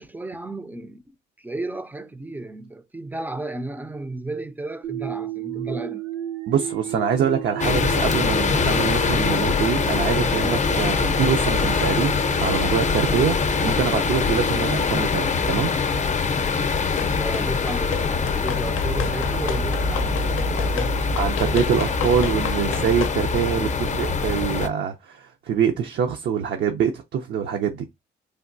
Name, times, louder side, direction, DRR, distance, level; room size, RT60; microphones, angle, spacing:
voice 1, 0.0-6.0 17.0-21.0, right 2 dB, 10° right, 0.4 m, -33 dB
sound 1, 4.8-14.8, right 9 dB, 90° right, 1.0 m, -33 dB
voice 2, 6.5-15.7 21.2-27.8, right 7 dB, 65° right, 0.6 m, -24 dB
sound 2, 7.6-24.7, left 5 dB, 35° left, 0.6 m, -23 dB
sound 3, 17.0-17.5 17.9-23.2, left 8 dB, 80° left, 0.5 m, -32 dB
3.4 x 2.3 x 2.5 m
cardioid pair, 90°, 20 cm